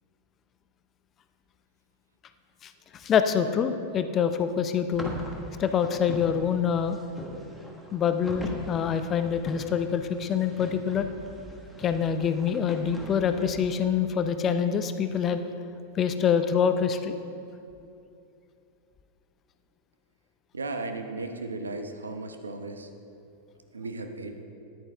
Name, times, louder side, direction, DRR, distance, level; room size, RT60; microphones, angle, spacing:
voice 1, 2.6-5.1 5.6-7.0 7.9-11.1 11.8-15.4 15.9-17.2, left 7 dB, 30° left, 9 dB, 0.6 m, -26 dB
sound 1, 4.9-14.0, equal, ahead, 1.5 m, -42 dB
voice 2, 20.5-22.9 23.7-24.4, right 3 dB, 75° right, 6 dB, 0.9 m, -35 dB
13.5 x 11.0 x 3.4 m, 2.6 s
figure-of-eight pair, 90°, 0 cm